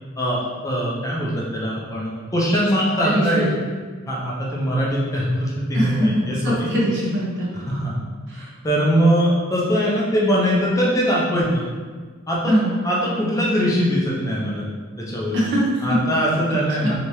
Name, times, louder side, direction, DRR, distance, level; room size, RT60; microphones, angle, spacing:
voice 1, 0.2-3.4 4.1-6.7 7.7-8.0 8.6-11.7 12.3-12.5 12.8-14.6 15.0-15.4 15.8-16.9, equal, 15° left, -5 dB, 0.5 m, -21 dB
voice 2, 3.0-3.5 5.7-7.8 8.3-8.5 12.5-12.8 15.3-15.9, equal, 60° right, -5 dB, 0.9 m, -22 dB
3.3 x 2.8 x 3.0 m, 1.5 s
head